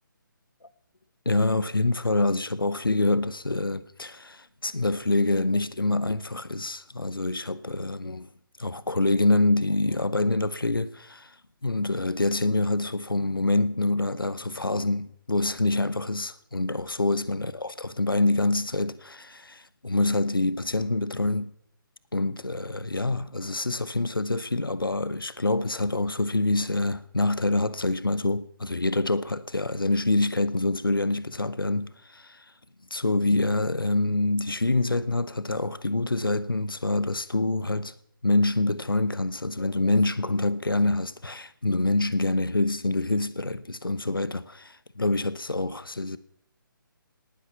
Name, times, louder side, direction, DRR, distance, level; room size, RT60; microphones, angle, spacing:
voice 1, 1.2-8.3 8.6-11.4 11.6-21.5 22.1-32.4 32.9-37.9 38.2-46.2, left 2 dB, 80° left, 1.0 m, -26 dB
19.0 x 10.0 x 7.0 m
figure-of-eight pair, 145°, 12 cm